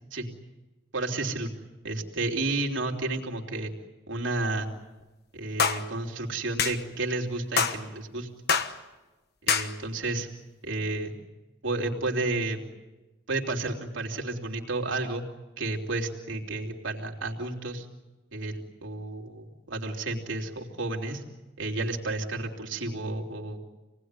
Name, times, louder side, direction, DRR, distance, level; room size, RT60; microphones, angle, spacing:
voice 1, 0.9-1.5 1.8-3.7 4.1-4.7 5.3-8.3 9.4-10.3 10.6-11.1 11.6-12.7 13.3-15.2 15.6-17.9 18.3-21.2 21.6-23.6, right 2 dB, 80° right, 1 dB, 3.2 m, -31 dB
sound 1, 5.6-5.8 6.6-6.8 7.6-7.8 8.5-8.7 9.5-9.7, left 6 dB, 55° left, 1.3 m, -24 dB
27.5 x 19.0 x 9.7 m, 1.1 s
head